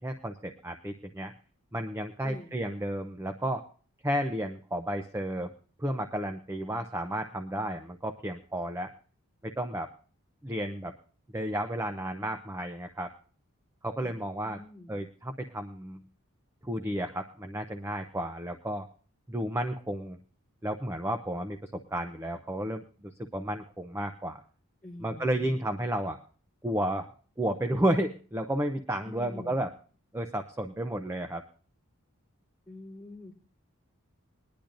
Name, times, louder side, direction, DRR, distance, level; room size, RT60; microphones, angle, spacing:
voice 1, 0.0-1.3 1.7-3.6 4.0-5.5 5.8-8.9 9.4-9.9 10.4-10.9 11.3-13.1 13.8-14.6 14.9-16.0 16.6-18.9 19.3-20.2 20.6-24.4 25.0-26.2 26.6-27.1 27.4-29.7 30.1-31.4, right 1 dB, 10° right, 6 dB, 0.5 m, -32 dB
voice 2, 2.2-2.5 14.0-15.0 24.8-25.6 29.0-29.6 32.7-33.3, left 2 dB, 5° left, -7 dB, 3.2 m, -46 dB
21.5 x 10.5 x 2.5 m, 0.41 s
head